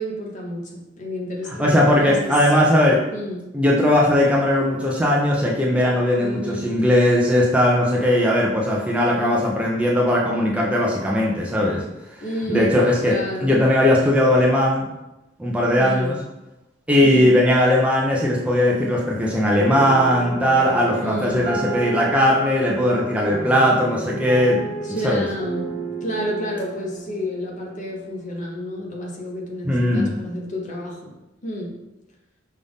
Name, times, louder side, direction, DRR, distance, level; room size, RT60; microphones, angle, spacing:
voice 1, 0.0-2.4 3.1-3.5 6.2-6.7 9.0-9.4 12.2-12.7 13.1-13.5 15.8-16.2 17.0-17.4 21.0-21.6 24.6-25.7 26.0-31.2 31.4-31.8, equal, 40° left, -1 dB, 0.9 m, -30 dB
voice 2, 1.6-3.0 3.5-11.8 12.5-14.9 15.4-16.2 16.9-24.6 25.0-25.3 29.6-30.2, left 1 dB, 5° right, -4 dB, 0.5 m, -18 dB
sound 1, 19.6-28.1, right 3 dB, 45° right, 1.1 m, -31 dB
5.4 x 2.5 x 3.5 m, 0.94 s
head